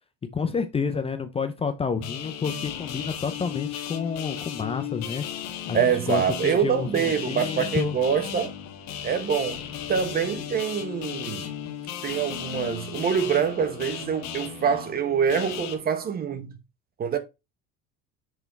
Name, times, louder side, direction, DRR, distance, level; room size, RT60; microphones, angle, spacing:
voice 1, 0.3-5.2 5.7-8.0, left 5 dB, 20° left, 0.6 m, -29 dB
sound 1, 2.0-15.7, left 9 dB, 65° left, 1.2 m, -35 dB
voice 2, 5.7-8.5 9.0-9.6 9.9-11.5 12.0-16.5 17.0-17.2, right 7 dB, 30° right, 1.0 m, -25 dB
6.3 x 3.4 x 4.6 m
cardioid pair, 125°, 29 cm